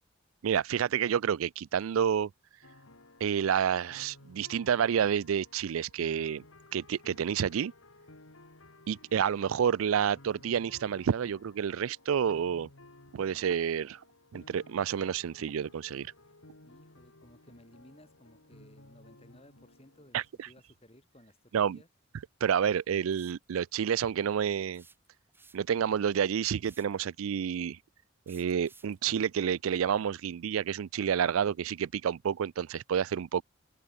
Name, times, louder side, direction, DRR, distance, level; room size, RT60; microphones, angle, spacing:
voice 1, 0.4-2.3 3.2-6.4 6.7-7.7 8.9-12.7 13.1-14.0 14.3-16.1 20.1-20.5 21.5-21.8 22.4-24.8 25.5-27.8 28.3-33.4, right 8 dB, 85° right, 0.4 m, -29 dB
sound 1, 2.6-20.3, left 2 dB, 90° left, 3.7 m, -56 dB
voice 2, 16.6-21.9, left 1 dB, 30° left, 6.5 m, -58 dB
sound 2, 23.1-23.4 24.7-25.8 26.6-27.0 28.3-29.0, right 4 dB, 10° right, 2.1 m, -58 dB
head